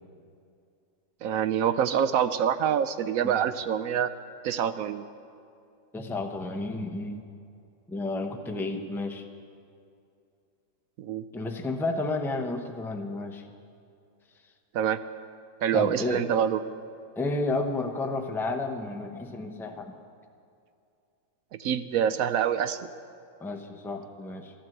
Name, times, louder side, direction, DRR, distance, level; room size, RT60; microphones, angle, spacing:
voice 1, 1.2-4.1 4.4-5.0 11.0-11.2 14.7-15.0 15.6-16.6 21.6-22.8, right 9 dB, 70° right, 12 dB, 0.9 m, -26 dB
voice 2, 5.9-7.3 7.9-9.3 11.3-13.4 15.7-16.3 17.2-20.0 23.4-24.5, left 2 dB, ahead, 4 dB, 0.5 m, -31 dB
13.5 x 13.0 x 7.9 m, 2.5 s
omnidirectional pair, 1.8 m